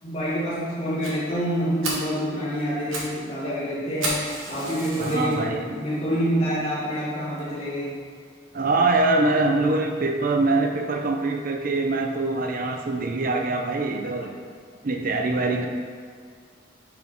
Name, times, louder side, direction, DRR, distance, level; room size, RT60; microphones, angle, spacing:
voice 1, 0.0-8.0 14.2-14.3, equal, 30° left, -9 dB, 1.6 m, -27 dB
Fire, 1.0-1.1 1.5-1.6 1.8-2.1 2.7-3.1 3.4-3.5 4.0-5.4 5.9-6.0 6.6-6.7 7.0-7.1 7.4-7.5, right 2 dB, 90° right, 1.4 m, -31 dB
voice 2, 5.0-5.6 8.5-14.3 14.8-15.7, right 2 dB, 45° right, 3 dB, 0.6 m, -23 dB
5.3 x 5.1 x 4.5 m, 2.1 s
head